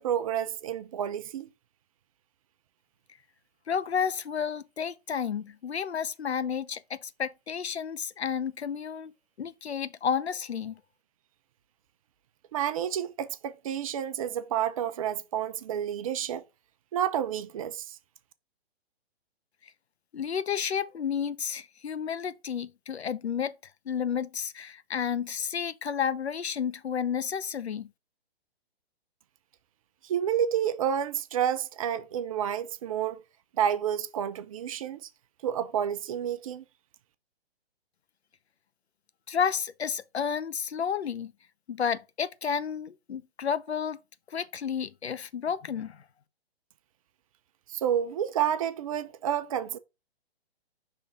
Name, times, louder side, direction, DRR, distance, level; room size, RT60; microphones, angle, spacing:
voice 1, 0.0-1.5 12.5-16.4 16.9-18.0 30.0-33.2 33.6-35.1 35.4-36.6 47.7-49.8, right 9 dB, 35° right, 0.5 m, -30 dB
voice 2, 3.7-9.1 9.4-10.8 20.1-23.5 23.9-27.9 39.3-41.3 41.7-44.0 44.3-46.0, left 7 dB, 85° left, 0.7 m, -31 dB
5.6 x 3.3 x 5.1 m
hypercardioid pair, 130°, 31 cm